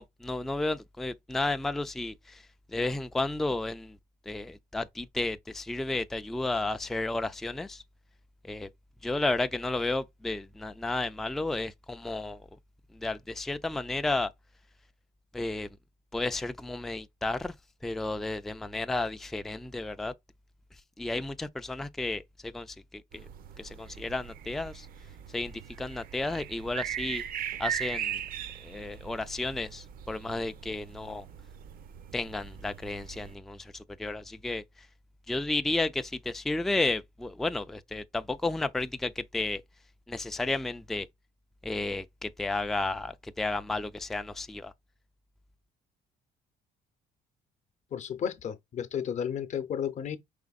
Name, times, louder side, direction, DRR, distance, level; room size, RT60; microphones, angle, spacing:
voice 1, 0.0-4.0 4.3-7.8 8.4-8.7 9.0-12.6 12.9-14.3 15.3-15.7 16.1-17.5 17.8-20.1 21.0-23.3 23.6-24.9 25.3-27.2 27.6-28.2 28.6-31.3 32.1-34.9 35.3-39.6 40.1-41.1 41.6-44.7, left 2 dB, ahead, 0.3 m, -32 dB
sound 1, 23.1-33.4, right 10 dB, 60° right, 0.6 m, -40 dB
voice 2, 47.9-50.2, left 8 dB, 45° left, 0.7 m, -33 dB
5.0 x 3.4 x 2.3 m
cardioid pair, 110°, 17 cm